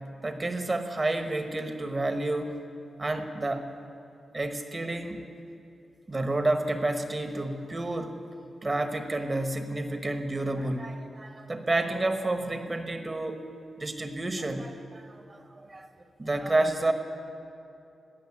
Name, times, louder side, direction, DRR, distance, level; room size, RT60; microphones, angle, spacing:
voice 1, 0.2-2.6 3.0-3.7 4.3-5.2 6.1-8.2 8.6-13.4 13.8-15.9 16.2-16.9, right 2 dB, 30° right, 7 dB, 1.2 m, -30 dB
18.0 x 6.6 x 9.8 m, 2.7 s
wide cardioid pair, 105°, 0 cm